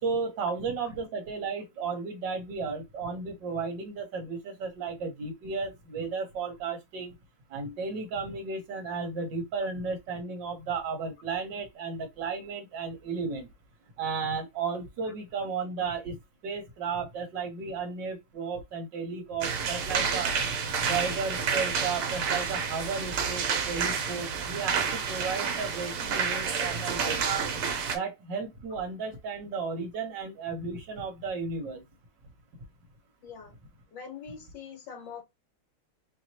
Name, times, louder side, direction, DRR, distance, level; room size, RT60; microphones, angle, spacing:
voice 1, 0.0-7.2 7.5-13.5 14.0-16.2 16.4-20.3 20.8-27.5 27.9-31.8, right 5 dB, 60° right, 1.8 m, -34 dB
sound 1, 19.4-28.0, right 6 dB, 80° right, 1.7 m, -29 dB
voice 2, 33.2-33.6 33.9-35.2, left 6 dB, 60° left, 1.7 m, -43 dB
4.7 x 2.9 x 2.9 m
omnidirectional pair, 2.4 m